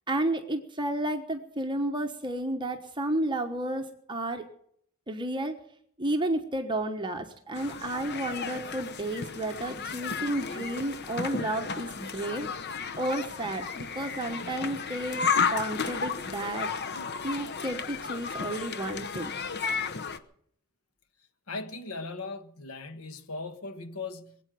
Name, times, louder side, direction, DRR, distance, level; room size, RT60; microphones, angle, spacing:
voice 1, 0.1-4.4 5.1-5.5 6.0-12.5 13.0-15.2 15.5-16.7 17.2-19.3, right 1 dB, 20° right, 1.2 m, -32 dB
sound 1, 7.6-20.2, left 5 dB, 50° left, 1.0 m, -33 dB
voice 2, 21.5-24.4, left 3 dB, 90° left, 1.5 m, -38 dB
21.5 x 8.5 x 7.7 m
head